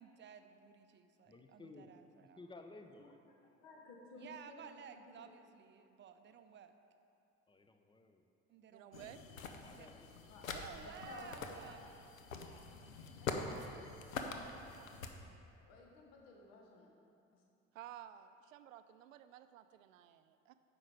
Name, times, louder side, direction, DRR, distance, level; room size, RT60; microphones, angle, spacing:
voice 1, 0.0-2.4 4.2-6.7 8.5-9.1 9.7-9.9 10.5-11.8 14.8-14.9, right 8 dB, 30° right, 8 dB, 0.6 m, -55 dB
voice 2, 1.3-1.9 2.2-3.2 7.5-8.3 9.6-10.2, left 3 dB, 10° left, 6 dB, 0.6 m, -57 dB
voice 3, 3.4-5.3 8.9-9.1 10.3-10.4 10.8-11.9 12.3-12.5 13.2-13.5 14.5-15.1 15.6-16.9 17.3-17.4, left 2 dB, 55° left, 0 dB, 1.3 m, -56 dB
voice 4, 8.7-9.4 17.7-20.5, right 11 dB, 75° right, 11 dB, 0.5 m, -54 dB
sound 1, 8.9-15.1, left 4 dB, 80° left, 0.7 m, -45 dB
9.6 x 6.9 x 4.8 m, 2.6 s
figure-of-eight pair, 60°, 40 cm